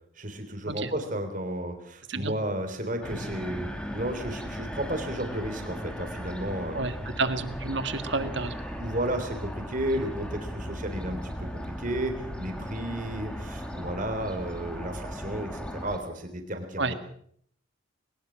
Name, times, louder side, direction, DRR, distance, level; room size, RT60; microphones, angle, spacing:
voice 1, 0.2-6.8 8.8-11.3 11.6-17.0, right 1 dB, 40° right, 6 dB, 3.4 m, -33 dB
sound 1, 3.0-16.0, equal, 5° left, 2.3 m, -37 dB
voice 2, 6.7-8.5 16.8-16.9, right 3 dB, 60° right, 9 dB, 1.8 m, -30 dB
21.5 x 20.0 x 6.3 m, 0.65 s
head